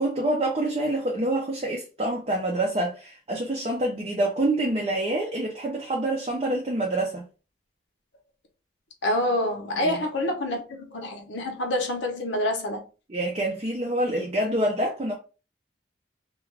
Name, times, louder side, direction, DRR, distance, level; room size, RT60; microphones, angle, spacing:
voice 1, 0.0-7.2 9.8-10.0 13.1-15.2, right 1 dB, 30° right, 0.5 m, -26 dB
voice 2, 9.0-12.8, left 1 dB, 85° left, 0.8 m, -27 dB
2.4 x 2.2 x 3.1 m
head